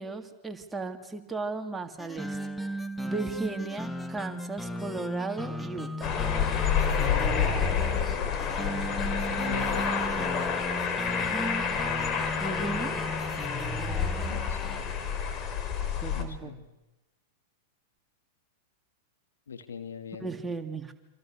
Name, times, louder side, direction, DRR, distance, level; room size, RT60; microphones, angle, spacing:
voice 1, 0.0-2.4 3.0-6.2 7.2-8.2 11.3-11.7 12.4-12.9 16.0-16.5 20.2-20.9, right 3 dB, 10° right, 4 dB, 3.0 m, -36 dB
sound 1, 2.0-14.8, equal, 5° left, 1.7 m, -36 dB
sound 2, 6.0-16.2, left 7 dB, 35° left, 4.0 m, -29 dB
voice 2, 9.5-9.9 14.3-14.8 16.1-16.7 19.5-20.3, left 6 dB, 80° left, 6 dB, 2.7 m, -41 dB
27.0 x 27.0 x 6.6 m, 1.0 s
hypercardioid pair, 95°, 0 cm